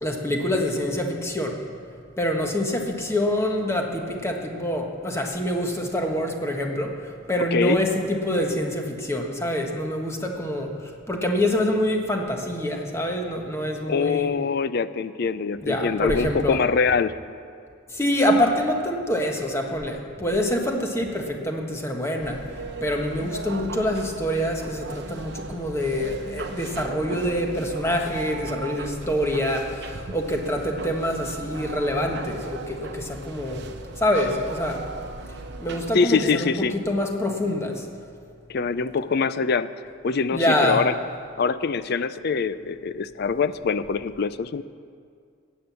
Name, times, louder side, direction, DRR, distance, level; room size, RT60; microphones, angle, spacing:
voice 1, 0.0-1.6 2.2-7.0 7.3-10.8 11.1-14.3 15.6-16.6 17.9-22.4 22.8-33.7 34.0-34.9 35.6-37.9 40.3-40.8, left 1 dB, 15° left, 2 dB, 1.3 m, -25 dB
voice 2, 7.5-7.8 13.9-17.1 35.9-36.8 38.5-39.7 40.0-40.9 41.4-44.6, left 5 dB, 55° left, 14 dB, 0.4 m, -24 dB
sound 1, 22.2-35.9, right 3 dB, 55° right, 0.9 m, -37 dB
14.5 x 9.4 x 7.0 m, 2.2 s
head